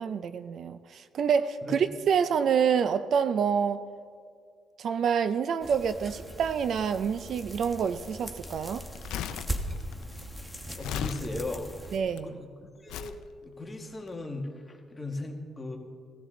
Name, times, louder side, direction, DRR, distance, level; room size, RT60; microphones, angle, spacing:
voice 1, 0.0-3.8 4.8-8.8 11.9-12.4, right 7 dB, 65° right, 0.4 m, -27 dB
sound 1, 5.6-12.0, right 1 dB, 5° right, 1.2 m, -39 dB
Crumpling crinkling, 8.9-12.2 12.9-13.2 14.0-14.1, left 9 dB, 90° left, 0.5 m, -37 dB
voice 2, 10.8-11.7 12.2-13.1 13.4-15.8, left 2 dB, 20° left, 1.7 m, -37 dB
16.5 x 13.0 x 3.8 m
cardioid pair, 90°, 0 cm